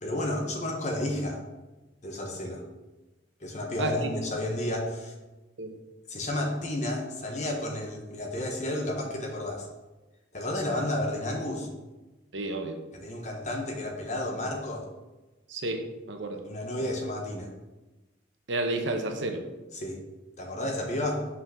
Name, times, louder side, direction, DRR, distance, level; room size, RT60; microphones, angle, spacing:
voice 1, 0.0-1.4 2.0-2.6 3.4-5.1 6.1-9.7 10.3-11.7 12.9-14.9 16.4-17.5 19.7-20.0 20.4-21.2, left 1 dB, 40° left, 1 dB, 1.3 m, -31 dB
voice 2, 3.8-4.1 5.6-5.7 10.7-10.8 12.3-12.8 15.5-16.4 18.5-19.5, right 2 dB, 85° right, 5 dB, 1.0 m, -31 dB
5.7 x 5.6 x 5.8 m, 1.1 s
head